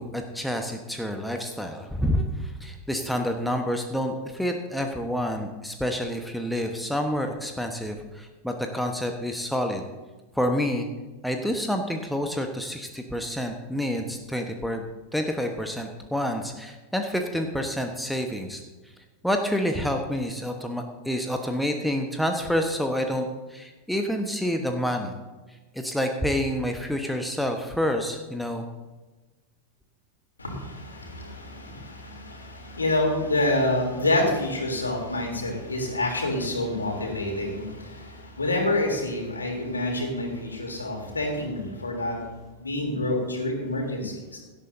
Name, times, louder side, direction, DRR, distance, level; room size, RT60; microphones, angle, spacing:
voice 1, 0.0-9.8 10.3-10.9 11.2-14.9 15.1-18.6 19.2-25.1 25.7-28.7, equal, ahead, 4 dB, 1.2 m, -28 dB
voice 2, 30.4-42.2 42.6-44.4, left 1 dB, 75° left, 1 dB, 3.2 m, -27 dB
17.5 x 12.5 x 2.7 m, 1.2 s
figure-of-eight pair, 90°, 0 cm